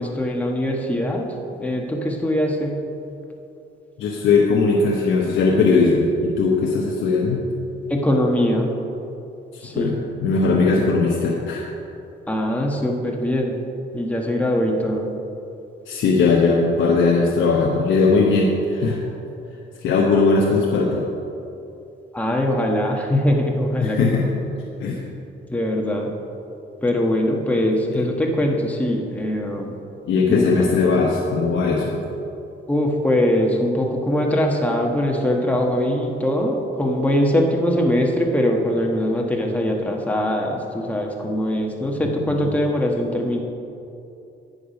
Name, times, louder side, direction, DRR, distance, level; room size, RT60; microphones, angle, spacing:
voice 1, 0.0-2.8 7.9-8.7 9.6-10.0 12.3-13.6 13.9-15.1 20.1-20.2 22.1-24.3 25.5-26.1 26.8-29.8 30.3-30.7 32.7-43.4, left 1 dB, 5° left, 0 dB, 1.2 m, -22 dB
voice 2, 4.0-7.4 9.7-11.7 15.9-19.0 19.8-21.1 23.8-24.3 24.8-25.0 27.9-28.1 30.1-32.0 42.3-42.5, left 4 dB, 75° left, -2 dB, 1.0 m, -19 dB
9.8 x 6.7 x 5.2 m, 2.8 s
cardioid pair, 90°, 20 cm